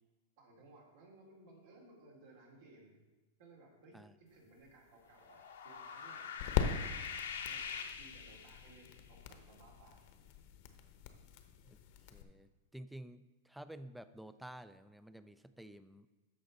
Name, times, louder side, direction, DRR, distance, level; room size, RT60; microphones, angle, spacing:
voice 1, 0.4-3.0 3.4-6.3 7.4-10.1, right 2 dB, 70° right, -2 dB, 3.0 m, -60 dB
sound 1, 4.3-12.2, left 8 dB, 60° left, 0.9 m, -42 dB
sound 2, 5.1-8.9, left 6 dB, 85° left, 1.0 m, -44 dB
voice 2, 12.1-16.1, right 1 dB, ahead, 12 dB, 0.4 m, -51 dB
13.5 x 5.2 x 4.0 m, 1.2 s
hypercardioid pair, 120°, 0 cm